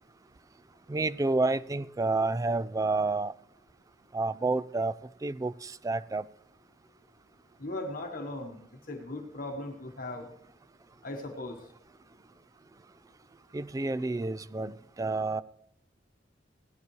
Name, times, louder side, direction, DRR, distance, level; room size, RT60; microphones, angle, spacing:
voice 1, 0.9-3.3 4.1-4.9 5.2-6.2 13.5-15.4, right 3 dB, 20° right, 0.3 m, -29 dB
voice 2, 7.6-10.3 11.0-11.7, left 2 dB, 50° left, 1.2 m, -38 dB
16.5 x 10.5 x 3.1 m
head